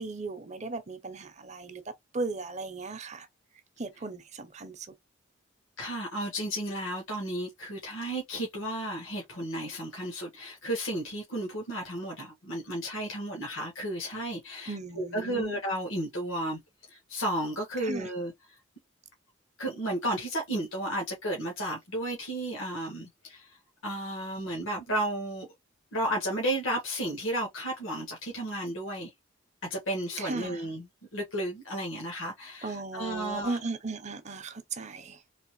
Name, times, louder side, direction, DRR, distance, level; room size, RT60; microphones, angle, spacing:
voice 1, 0.0-1.8 2.1-3.3 3.8-4.9 14.7-15.6 17.8-18.1 30.2-30.6 32.6-35.2, right 3 dB, 35° right, 0.6 m, -36 dB
voice 2, 5.8-16.6 16.9-18.3 19.6-23.6 23.8-25.5 25.9-29.1 29.7-33.6, right 1 dB, 80° left, 1.5 m, -33 dB
3.9 x 2.9 x 3.0 m
head